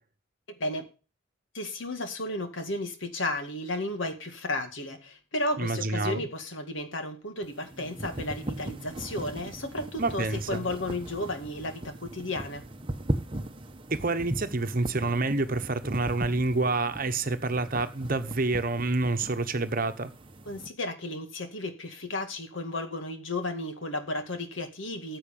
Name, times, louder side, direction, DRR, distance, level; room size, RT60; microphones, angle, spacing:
voice 1, 1.5-12.7 20.5-25.2, left 1 dB, 70° left, 2.1 m, -33 dB
voice 2, 5.6-6.2 10.0-10.6 13.9-20.1, right 3 dB, 45° right, 1.1 m, -28 dB
sound 1, 7.4-20.7, right 1 dB, 25° right, 1.0 m, -38 dB
14.0 x 7.9 x 5.4 m
head